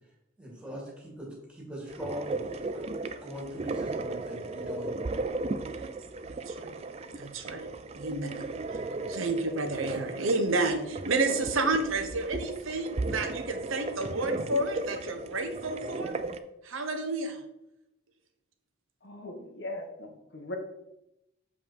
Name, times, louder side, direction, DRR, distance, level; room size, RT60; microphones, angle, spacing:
voice 1, 0.4-2.9 3.2-5.0, equal, 5° right, -3 dB, 2.0 m, -41 dB
sound 1, 1.9-16.4, right 3 dB, 30° right, 0.3 m, -36 dB
voice 2, 6.3-6.8 7.1-7.7 7.9-8.6 9.1-16.2 16.6-17.4, right 2 dB, 80° right, 6 dB, 1.0 m, -30 dB
voice 3, 19.0-20.6, left 1 dB, 55° left, 3 dB, 1.2 m, -40 dB
7.1 x 5.1 x 4.3 m, 0.87 s
head